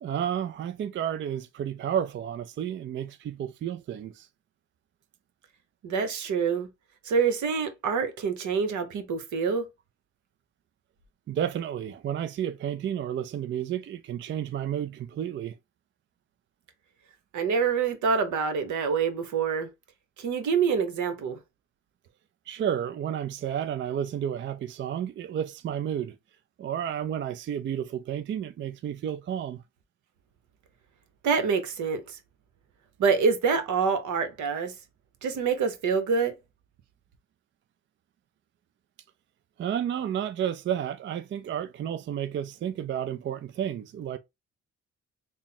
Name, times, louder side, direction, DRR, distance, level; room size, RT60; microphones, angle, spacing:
voice 1, 0.0-4.3 11.3-15.6 22.5-26.2 26.6-29.6 39.6-44.2, right 9 dB, 40° right, 0.4 m, -31 dB
voice 2, 5.8-6.7 7.0-9.7 17.3-19.7 20.2-21.4 31.2-32.0 33.0-34.7 35.2-36.3, right 5 dB, 75° right, 1.0 m, -26 dB
3.5 x 2.1 x 4.2 m
cardioid pair, 90°, 30 cm